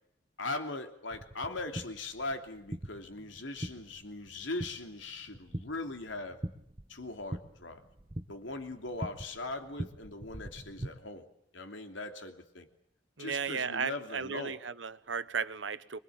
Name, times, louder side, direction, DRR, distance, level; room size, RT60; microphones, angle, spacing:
voice 1, 0.4-6.4 6.9-7.8 8.3-11.3 11.5-12.7 13.2-14.6, left 2 dB, 85° left, 3.0 m, -40 dB
sound 1, 1.1-10.9, right 1 dB, 25° right, 1.3 m, -43 dB
voice 2, 13.2-16.0, right 5 dB, 80° right, 1.2 m, -35 dB
25.0 x 22.5 x 8.7 m
head